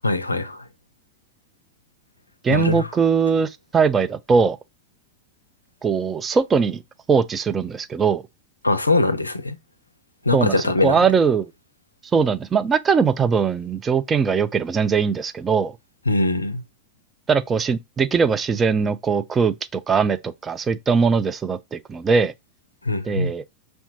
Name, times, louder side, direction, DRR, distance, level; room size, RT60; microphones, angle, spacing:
voice 1, 0.0-0.6 2.5-2.8 8.6-9.6 10.3-11.0 16.1-16.6 22.9-23.3, left 2 dB, 80° left, 0.4 m, -21 dB
voice 2, 2.4-4.6 5.8-6.8 7.1-8.2 10.3-11.5 12.1-15.7 17.3-22.3 23.0-23.4, right 5 dB, 20° right, 0.3 m, -21 dB
5.4 x 2.2 x 2.8 m
figure-of-eight pair, 90°, 0 cm